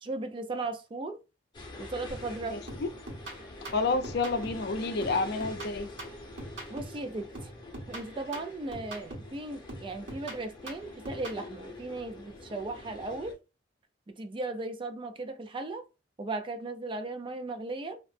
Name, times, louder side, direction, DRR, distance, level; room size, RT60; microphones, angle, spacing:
voice 1, 0.0-1.2 1.8-2.6 6.7-7.5 7.9-13.4 14.2-15.9 16.2-18.0, right 2 dB, 30° right, 0.4 m, -37 dB
sound 1, 1.5-13.3, left 2 dB, 25° left, 0.7 m, -45 dB
sound 2, 2.1-2.4 2.7-4.7 5.0-7.0 7.3-9.4 9.7-11.4, right 1 dB, 75° right, 1.5 m, -43 dB
voice 2, 2.5-2.9 3.7-5.9, left 3 dB, 60° left, 0.5 m, -29 dB
2.8 x 2.0 x 3.1 m
head